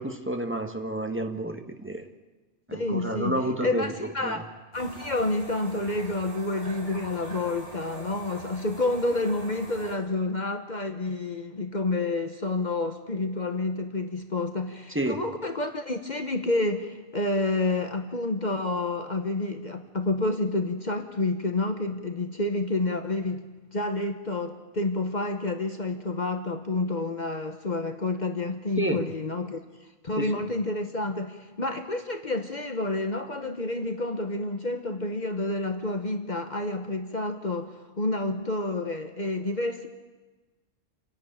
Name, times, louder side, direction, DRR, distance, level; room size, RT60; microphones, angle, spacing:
voice 1, 0.0-2.0 2.7-4.4 14.9-15.2 28.8-29.0 30.2-30.3, right 1 dB, 10° right, 4 dB, 1.3 m, -30 dB
voice 2, 2.7-4.4 4.7-23.5 23.7-29.6 30.0-39.9, left 2 dB, 40° left, 6 dB, 1.2 m, -29 dB
sound 1, 4.7-9.9, right 1 dB, 40° right, 4.7 m, -43 dB
28.0 x 11.0 x 8.9 m, 1.2 s
omnidirectional pair, 1.2 m